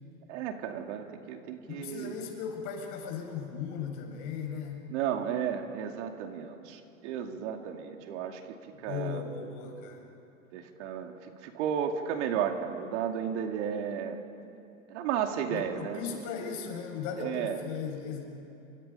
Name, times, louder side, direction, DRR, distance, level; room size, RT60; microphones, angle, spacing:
voice 1, 0.3-2.2 4.9-9.2 10.5-14.2 14.9-16.2 17.2-17.6, right 8 dB, 55° right, 4 dB, 2.5 m, -33 dB
voice 2, 1.7-4.9 8.8-10.0 15.5-18.2, left 6 dB, 45° left, 2 dB, 6.4 m, -37 dB
28.5 x 25.0 x 5.6 m, 2.8 s
hypercardioid pair, 120°, 41 cm